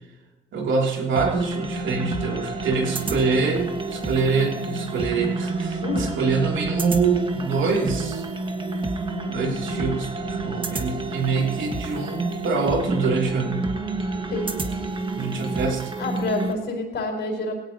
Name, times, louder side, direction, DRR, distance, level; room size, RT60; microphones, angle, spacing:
voice 1, 0.5-8.2 9.3-13.7 15.1-15.9, right 4 dB, 70° right, 0 dB, 3.2 m, -25 dB
sound 1, 1.2-16.5, right 2 dB, 25° right, 1.6 m, -29 dB
voice 2, 16.0-17.5, left 2 dB, 60° left, 2 dB, 4.8 m, -28 dB
18.5 x 17.0 x 3.0 m, 1.2 s
cardioid pair, 90°, 20 cm